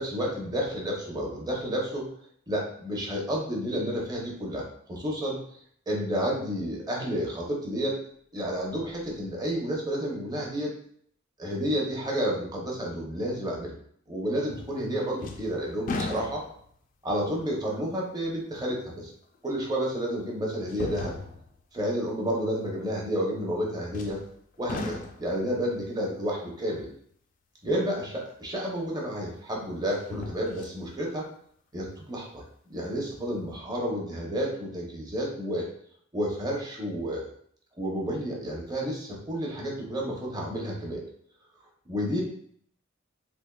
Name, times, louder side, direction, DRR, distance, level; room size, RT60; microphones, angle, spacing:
voice 1, 0.0-2.1 2.5-5.4 5.9-8.0 8.3-10.7 11.4-13.7 14.1-16.4 17.0-19.1 19.4-21.1 21.7-24.2 24.6-26.9 27.6-31.3 31.7-35.7 36.1-37.3 37.8-41.0 41.9-42.2, equal, 20° right, -2 dB, 0.7 m, -30 dB
sound 1, 14.5-14.9 15.2-16.8 17.4-17.5 19.3-19.4 20.7-21.6 23.9-24.4 24.7-25.4 28.4-28.5 29.9-30.8 31.2-31.3, left 3 dB, 40° left, 0.3 m, -36 dB
3.4 x 3.3 x 2.3 m, 0.63 s
head